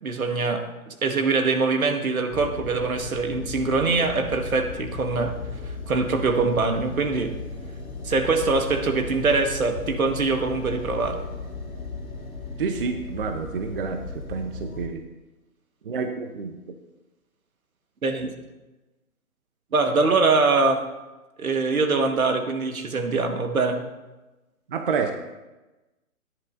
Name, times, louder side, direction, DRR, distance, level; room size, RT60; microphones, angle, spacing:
voice 1, 0.0-5.4 5.9-7.4 8.0-11.2 18.0-18.3 19.7-20.8 21.4-23.8, right 3 dB, 75° right, 5 dB, 1.5 m, -23 dB
sound 1, 2.3-14.9, left 3 dB, 75° left, 2.0 m, -36 dB
voice 2, 12.6-14.0 14.3-15.0 15.8-16.6 24.7-25.1, right 5 dB, 40° right, 6 dB, 0.7 m, -28 dB
14.0 x 10.5 x 2.6 m, 1.1 s
figure-of-eight pair, 145°, 43 cm